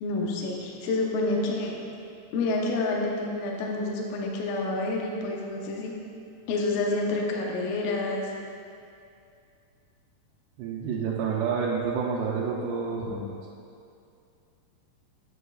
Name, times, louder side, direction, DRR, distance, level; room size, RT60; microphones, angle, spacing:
voice 1, 0.0-1.7 2.3-5.9 6.5-8.3, left 2 dB, 80° left, -1 dB, 2.1 m, -28 dB
voice 2, 10.6-13.3, right 5 dB, 90° right, -6 dB, 2.8 m, -29 dB
8.0 x 7.5 x 2.3 m, 2.5 s
omnidirectional pair, 4.8 m